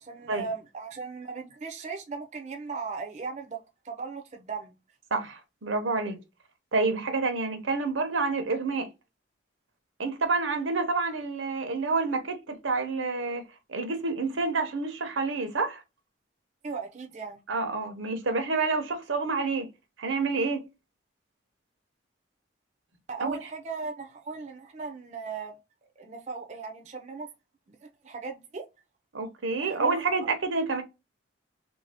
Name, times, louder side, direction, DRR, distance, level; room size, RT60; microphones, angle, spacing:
voice 1, 0.0-4.8 16.6-17.4 23.1-25.5 26.0-27.3 27.7-28.6 29.6-30.3, right 4 dB, 35° right, 0.5 m, -38 dB
voice 2, 5.1-6.2 6.7-8.9 10.0-15.8 17.5-19.7 20.0-20.6 23.2-23.4 29.1-30.8, right 3 dB, 80° right, 0.8 m, -28 dB
3.2 x 2.6 x 3.3 m
head